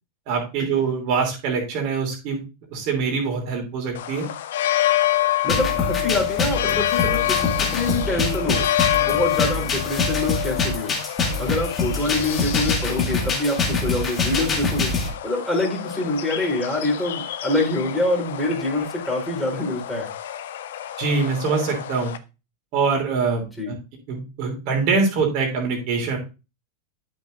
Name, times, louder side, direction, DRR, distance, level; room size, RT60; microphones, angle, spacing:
voice 1, 0.3-2.4 2.7-4.3 21.0-22.1 22.7-23.7 24.1-26.2, right 5 dB, 45° right, 1 dB, 3.1 m, -24 dB
sound 1, 3.9-22.2, left 13 dB, 60° left, 0.8 m, -27 dB
voice 2, 5.4-10.9 11.4-14.9 15.2-20.1 23.6-23.7, left 2 dB, 5° left, -1 dB, 4.1 m, -25 dB
sound 2, 5.5-15.1, left 3 dB, 20° left, 2.2 m, -25 dB
12.0 x 6.4 x 2.6 m, 0.29 s
figure-of-eight pair, 90°, 0 cm